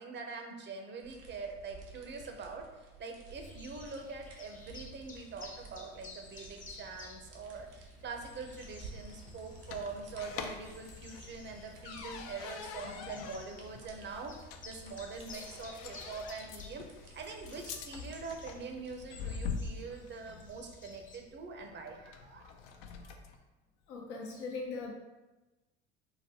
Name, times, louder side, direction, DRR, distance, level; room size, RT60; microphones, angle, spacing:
voice 1, 0.0-23.1, right 4 dB, 35° right, 3 dB, 0.6 m, -44 dB
sound 1, 1.0-19.1, right 4 dB, 85° right, 0.7 m, -55 dB
sound 2, 3.3-21.2, left 3 dB, 25° left, 0.7 m, -54 dB
sound 3, 8.3-23.4, left 5 dB, 65° left, 0.5 m, -45 dB
voice 2, 23.9-24.9, left 4 dB, 85° left, -2 dB, 0.8 m, -39 dB
3.9 x 2.1 x 2.8 m, 1.1 s
hypercardioid pair, 70°, 33 cm